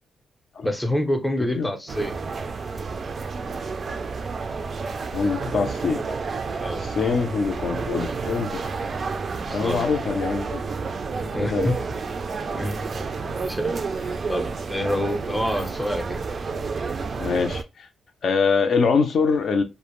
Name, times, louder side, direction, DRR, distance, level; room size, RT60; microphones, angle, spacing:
voice 1, 0.6-2.2 6.6-6.8 9.4-9.8 11.3-11.8 12.5-13.0 13.4-13.8 14.3-16.2, left 1 dB, 5° left, 0.5 m, -27 dB
sound 1, 1.9-17.6, right 4 dB, 40° right, 0.3 m, -30 dB
voice 2, 5.1-6.0 6.7-8.6 9.5-10.6 11.2-11.7 17.2-17.9 18.2-19.6, left 5 dB, 55° left, 0.4 m, -24 dB
2.5 x 2.0 x 3.0 m
cardioid pair, 125°, 0 cm